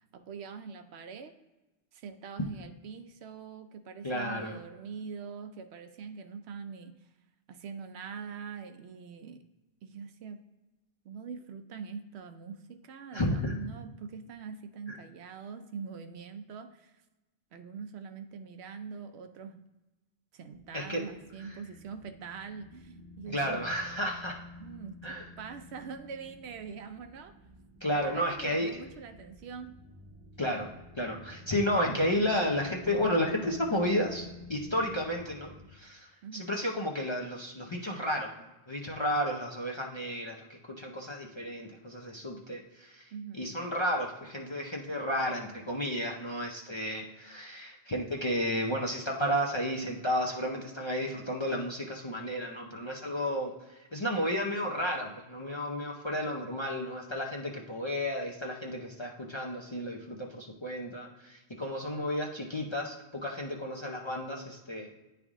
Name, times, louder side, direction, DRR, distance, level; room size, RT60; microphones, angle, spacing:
voice 1, 0.1-1.3 1.9-6.9 7.5-9.4 9.8-10.4 11.0-17.0 17.5-19.6 20.3-23.6 24.6-25.0 25.4-27.3 27.9-29.8 36.2-36.6 43.1-43.6, right 6 dB, 75° right, 8 dB, 0.8 m, -43 dB
voice 2, 4.0-4.6 13.1-13.5 14.9-15.0 20.7-21.0 21.4-21.6 23.3-24.4 25.0-25.3 27.8-28.7 30.4-30.7 31.0-38.3 38.7-64.9, equal, 35° left, -1 dB, 0.5 m, -32 dB
sound 1, 20.5-35.7, left 3 dB, 40° right, 0.8 m, -50 dB
9.6 x 3.4 x 3.6 m, 1.0 s
omnidirectional pair, 1.1 m